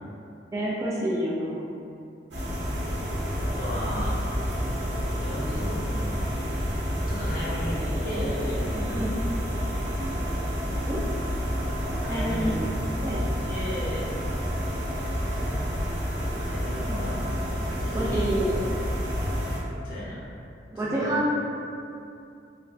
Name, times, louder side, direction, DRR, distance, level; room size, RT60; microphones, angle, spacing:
voice 1, 0.5-1.7 8.9-9.2 10.9-11.0 12.1-12.5 13.0-13.2 16.9-17.3 17.9-18.6 20.7-21.5, right 1 dB, 20° right, -6 dB, 0.3 m, -28 dB
sound 1, 2.3-19.6, equal, 85° right, 0.7 m, -29 dB
voice 2, 3.2-4.2 5.2-6.2 7.1-9.7 12.0-12.5 13.5-14.1 16.4-18.3 19.8-20.2 20.7-21.2, equal, 55° left, -8 dB, 0.9 m, -35 dB
3.3 x 2.3 x 2.5 m, 2.6 s
head